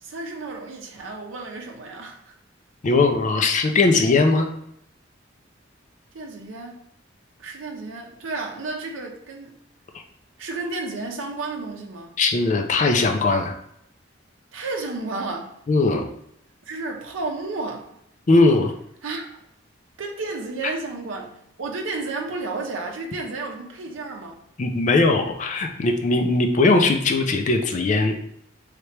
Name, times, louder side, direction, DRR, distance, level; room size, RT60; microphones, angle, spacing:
voice 1, 0.0-2.3 6.1-6.8 7.4-9.6 10.4-12.2 14.5-15.5 16.7-17.8 19.0-19.3 20.0-24.4, right 3 dB, 80° right, 1 dB, 0.6 m, -32 dB
voice 2, 2.8-4.5 12.2-13.5 15.7-16.1 18.3-18.7 24.6-28.1, left 3 dB, 40° left, 5 dB, 0.4 m, -19 dB
3.3 x 2.9 x 3.2 m, 0.74 s
head